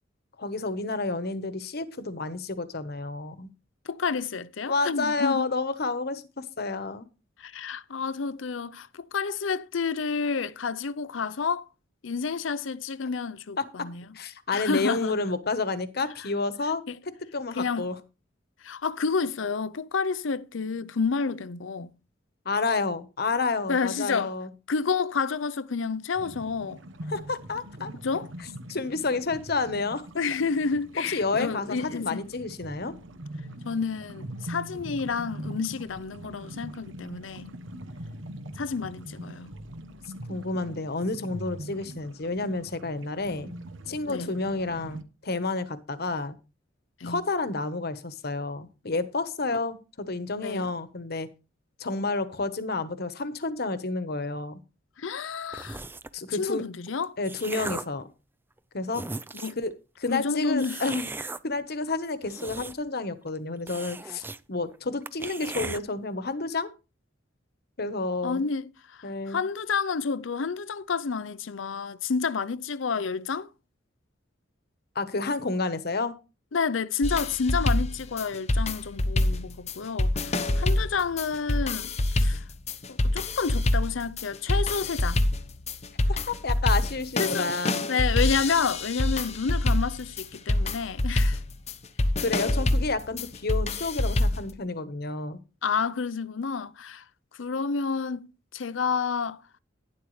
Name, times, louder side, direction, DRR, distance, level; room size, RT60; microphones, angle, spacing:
voice 1, 0.4-3.5 4.7-7.1 13.6-13.7 14.1-16.8 17.3-18.0 22.4-24.5 27.1-27.9 28.7-30.0 31.1-32.9 40.3-43.5 43.9-46.4 47.0-51.3 51.8-54.6 56.1-56.6 57.2-58.0 58.7-59.0 59.6-59.7 60.0-61.1 61.4-66.7 67.8-68.4 69.0-69.4 74.9-76.2 86.1-87.8 92.2-95.4, left 3 dB, 55° left, 1.2 m, -30 dB
voice 2, 3.9-5.5 7.4-11.6 12.0-14.0 14.5-15.2 16.9-17.0 17.5-17.9 18.6-21.9 23.7-24.3 24.7-26.8 28.0-28.3 30.2-32.2 33.6-37.5 38.6-39.5 44.1-44.3 47.0-47.2 50.4-50.7 55.0-55.8 56.3-57.2 59.4-59.6 60.1-60.8 68.2-73.5 76.5-82.4 82.9-85.2 87.2-87.5 87.9-91.4 95.6-97.0 97.3-99.4, left 5 dB, 85° left, 0.6 m, -30 dB
sound 1, 26.1-45.0, right 1 dB, 85° right, 1.2 m, -42 dB
sound 2, 55.5-56.2 56.9-58.0 58.6-58.7 58.9-59.7 60.6-61.4 62.1-63.0 63.3-63.4 63.7-64.4 64.7-64.8 65.1-65.8, right 3 dB, 10° right, 0.5 m, -37 dB
sound 3, 77.0-94.5, left 1 dB, 35° left, 0.9 m, -26 dB
12.0 x 10.5 x 3.2 m
head